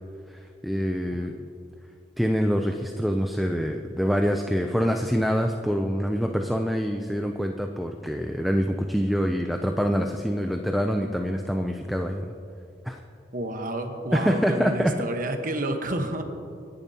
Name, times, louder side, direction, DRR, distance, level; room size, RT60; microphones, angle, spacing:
voice 1, 0.6-1.3 2.2-12.3 12.8-13.0 14.1-14.9, equal, ahead, 3 dB, 0.5 m, -25 dB
voice 2, 13.3-16.2, right 1 dB, 50° right, 5 dB, 1.1 m, -30 dB
24.5 x 10.5 x 2.8 m, 2.6 s
head